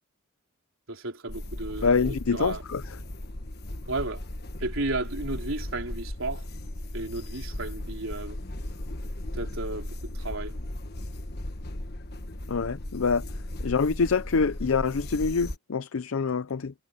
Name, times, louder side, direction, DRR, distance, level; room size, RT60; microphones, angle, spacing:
voice 1, 0.9-2.6 3.9-4.2 4.6-6.5 6.9-8.4 9.3-10.6, right 2 dB, 70° right, 3.8 m, -33 dB
sound 1, 1.3-15.6, left 1 dB, 50° left, 1.4 m, -36 dB
voice 2, 1.8-2.8 12.5-13.2 13.6-16.7, left 5 dB, 75° left, 0.6 m, -25 dB
head